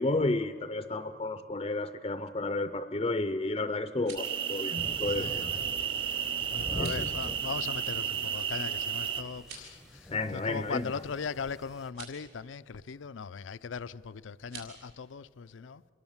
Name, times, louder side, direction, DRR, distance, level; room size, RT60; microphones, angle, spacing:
voice 1, 0.0-5.5 6.8-7.3 10.1-11.0, left 2 dB, 30° left, 0.5 m, -32 dB
sound 1, 3.8-4.4 6.7-7.1 9.3-9.8 11.8-12.2 14.4-14.7, right 6 dB, 60° right, 5.7 m, -47 dB
sound 2, 4.2-9.2, right 8 dB, 30° right, 1.2 m, -33 dB
sound 3, 4.8-11.9, equal, 5° right, 0.7 m, -45 dB
voice 2, 6.5-9.7 10.5-15.8, left 5 dB, 85° left, 0.5 m, -39 dB
28.0 x 23.0 x 7.2 m
head